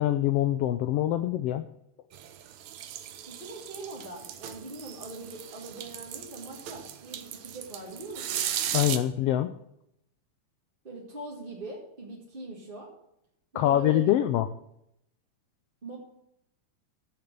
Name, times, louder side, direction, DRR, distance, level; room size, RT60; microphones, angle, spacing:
voice 1, 0.0-1.7 8.7-9.5 13.5-14.5, left 12 dB, 85° left, 10 dB, 1.3 m, -24 dB
sound 1, 2.1-9.0, right 10 dB, 70° right, 2.1 m, -37 dB
voice 2, 3.3-8.4 10.8-12.9 13.5-14.1 15.8-16.0, right 2 dB, 20° right, -4 dB, 1.8 m, -42 dB
13.0 x 6.8 x 6.7 m, 0.78 s
omnidirectional pair, 3.4 m